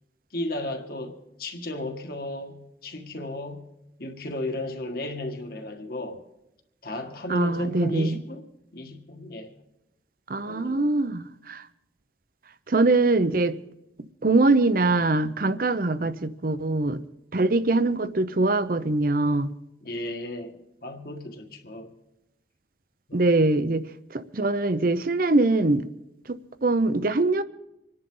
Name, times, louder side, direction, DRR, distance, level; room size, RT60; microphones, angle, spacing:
voice 1, 0.3-3.6 4.0-6.2 6.8-8.5 8.7-9.5 10.5-10.9 19.8-21.9 23.1-23.3, left 1 dB, 50° left, 1.8 m, -34 dB
voice 2, 7.3-8.2 10.3-11.7 12.7-13.6 14.2-17.0 17.3-19.5 23.1-23.8 24.1-25.8 26.3-27.4, right 2 dB, 50° right, 0.7 m, -23 dB
26.5 x 10.5 x 3.9 m
head